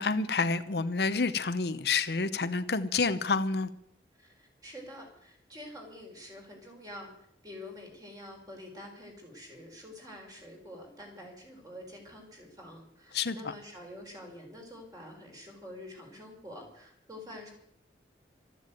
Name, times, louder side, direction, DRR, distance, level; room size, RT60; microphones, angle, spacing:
voice 1, 0.0-3.7 13.1-13.5, left 4 dB, 65° left, 11 dB, 0.8 m, -29 dB
voice 2, 4.2-7.1 7.4-17.5, left 1 dB, 20° right, 1 dB, 4.6 m, -47 dB
13.5 x 10.5 x 9.1 m, 0.72 s
head